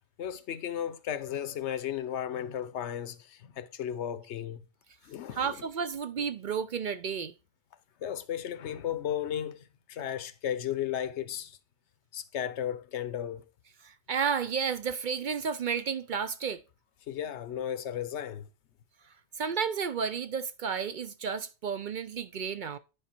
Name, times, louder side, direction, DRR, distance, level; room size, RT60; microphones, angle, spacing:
voice 1, 0.2-4.6 5.0-5.6 8.0-11.6 12.1-13.4 17.1-18.5, left 10 dB, 85° left, 1.0 m, -35 dB
voice 2, 5.4-7.3 13.8-16.6 19.4-22.8, right 6 dB, 55° right, 0.6 m, -32 dB
10.0 x 5.0 x 4.3 m
omnidirectional pair, 1.1 m